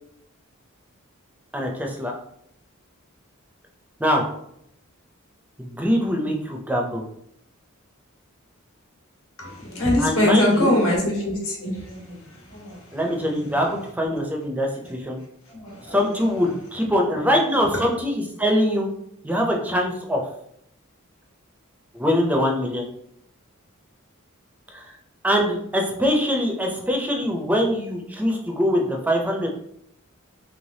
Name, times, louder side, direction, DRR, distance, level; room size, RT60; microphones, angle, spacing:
voice 1, 1.5-2.1 4.0-4.2 5.6-7.0 10.0-10.8 12.9-15.2 15.9-18.9 19.2-20.2 22.0-22.9 24.7-24.9 25.2-29.5, equal, 5° right, 1 dB, 0.4 m, -23 dB
voice 2, 9.4-13.6 14.1-14.2 14.8-14.9 15.5-16.0 17.1-17.2 17.6-17.8, left 1 dB, 85° left, -3 dB, 1.4 m, -24 dB
3.2 x 3.1 x 2.6 m, 0.75 s
head